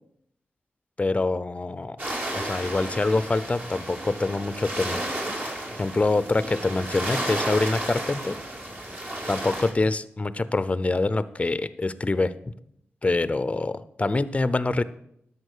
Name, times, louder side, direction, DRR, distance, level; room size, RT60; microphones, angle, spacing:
voice 1, 1.0-2.0 2.3-5.0 5.8-8.4 9.3-12.3 13.0-14.8, left 3 dB, 30° left, 15 dB, 0.6 m, -25 dB
sound 1, 2.0-9.7, right 1 dB, 45° right, 3.2 m, -32 dB
11.0 x 7.2 x 6.7 m, 0.74 s
cardioid pair, 60°, 4 cm